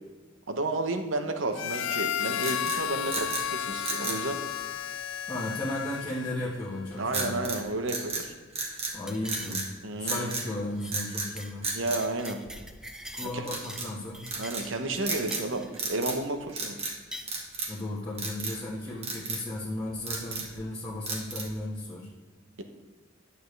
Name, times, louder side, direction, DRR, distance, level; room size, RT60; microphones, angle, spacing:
voice 1, 0.5-4.4 7.0-8.3 9.8-10.3 11.7-12.4 13.2-13.5 14.4-16.8, right 2 dB, 70° right, 7 dB, 0.9 m, -32 dB
Harmonica, 1.5-6.6, left 10 dB, 75° left, 0.4 m, -33 dB
sound 1, 2.4-3.5 3.8-4.2 7.1-7.6 7.9-9.0 9.2-9.7 10.1-10.5 10.9-11.3 11.6-12.8 13.4-13.9 14.3-14.7 15.0-15.5 15.7-16.2 16.5-17.0 17.3-17.8 18.2-18.6 19.0-19.4 19.9-20.6 21.1-21.6, right 3 dB, 30° right, 1.4 m, -34 dB
voice 2, 5.3-7.5 8.9-9.7 10.0-11.7 13.1-14.2 17.7-22.1, left 1 dB, 20° left, -7 dB, 1.4 m, -35 dB
sound 2, 9.1-9.9 10.1-10.4 10.8-11.1 11.4-11.6 11.8-13.9 14.1-15.9 16.9-17.3, equal, 5° right, 0.5 m, -44 dB
10.5 x 6.8 x 3.3 m, 1.4 s
head